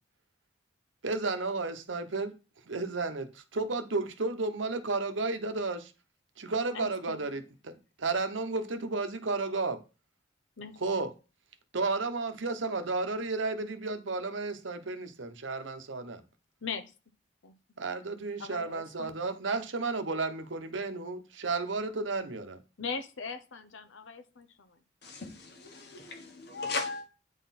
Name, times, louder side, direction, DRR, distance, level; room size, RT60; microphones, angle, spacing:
voice 1, 1.0-2.3 2.7-5.9 6.4-9.8 10.8-11.1 11.7-16.2 17.8-22.6, right 3 dB, 80° right, 1.0 m, -33 dB
voice 2, 6.7-7.3 10.6-10.8 16.6-16.9 17.4-17.5 18.4-19.1 22.8-24.8, left 5 dB, 85° left, 0.8 m, -40 dB
voice 3, 25.0-27.1, left 3 dB, 55° left, 1.4 m, -37 dB
9.1 x 4.1 x 4.2 m
head